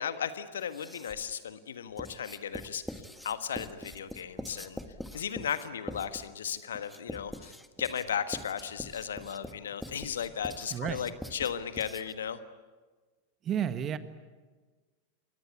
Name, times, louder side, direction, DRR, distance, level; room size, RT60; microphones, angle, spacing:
voice 1, 0.0-4.8 5.1-12.4, left 8 dB, 65° left, 11 dB, 1.5 m, -36 dB
Writing, 0.6-1.3 2.0-12.3, left 1 dB, ahead, 1.5 m, -44 dB
voice 2, 10.7-11.1 13.4-14.0, right 9 dB, 30° right, 12 dB, 1.5 m, -31 dB
29.0 x 22.5 x 8.4 m, 1.4 s
figure-of-eight pair, 90°, 0 cm